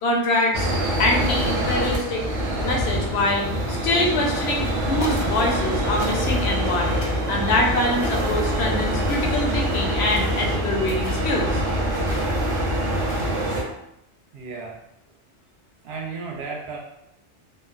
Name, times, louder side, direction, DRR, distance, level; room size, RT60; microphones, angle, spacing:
voice 1, 0.0-0.7 1.0-2.2 2.6-7.0 7.3-11.6, left 2 dB, 70° left, 0 dB, 0.8 m, -24 dB
sound 1, 0.5-13.6, right 1 dB, 85° right, 0.9 m, -24 dB
sound 2, 4.4-4.7 5.0-5.6 6.0-6.5 7.0-7.4 8.0-8.4 9.0-9.6 10.0-10.4 11.0-11.3 12.1-12.5 12.9-13.6, left 1 dB, 45° left, 0.4 m, -37 dB
voice 2, 14.3-14.8 15.8-16.8, right 4 dB, 65° right, -1 dB, 0.8 m, -33 dB
3.1 x 2.0 x 2.3 m, 0.82 s
omnidirectional pair, 1.2 m